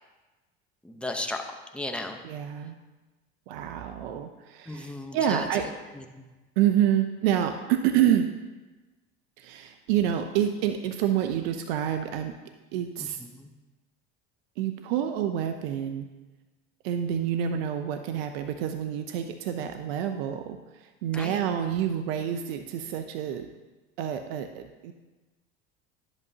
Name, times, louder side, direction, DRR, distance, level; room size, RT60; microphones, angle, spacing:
voice 1, 0.8-1.4 1.7-2.2 4.7-5.5 6.0-6.1 13.0-13.5 21.1-21.4, left 2 dB, 5° left, 4 dB, 0.9 m, -35 dB
voice 2, 2.2-2.7 3.5-5.6 6.6-8.3 9.4-12.3 12.7-13.2 14.6-16.1 16.8-23.5 24.0-24.9, right 10 dB, 80° right, 7 dB, 0.6 m, -28 dB
10.5 x 8.0 x 2.8 m, 1.2 s
supercardioid pair, 90°, 30 cm